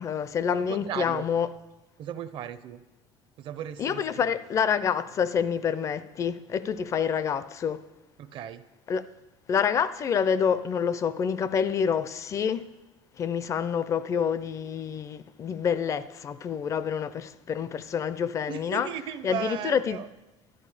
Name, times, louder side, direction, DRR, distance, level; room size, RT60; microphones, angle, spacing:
voice 1, 0.0-1.5 3.8-7.8 8.9-9.0 9.5-12.7 13.2-18.9 19.2-20.0, left 7 dB, 25° left, 0.4 m, -27 dB
voice 2, 0.5-1.3 2.0-2.8 3.4-4.4 8.2-8.6 18.5-20.1, right 9 dB, 45° right, 0.6 m, -36 dB
12.5 x 12.5 x 4.9 m
cardioid pair, 175°, 12 cm